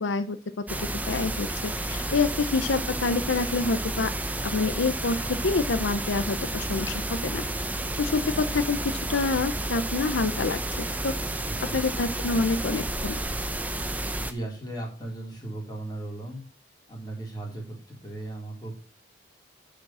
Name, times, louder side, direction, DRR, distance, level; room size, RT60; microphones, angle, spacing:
voice 1, 0.0-4.1 4.4-7.4 8.0-10.6 11.0-11.1 11.7-13.2, left 3 dB, 80° left, 11 dB, 0.6 m, -27 dB
sound 1, 0.7-14.3, right 1 dB, 10° right, 0.7 m, -31 dB
voice 2, 11.4-11.8 14.2-16.4 16.9-18.8, right 2 dB, 20° left, -2 dB, 3.7 m, -37 dB
9.5 x 5.2 x 6.0 m, 0.40 s
head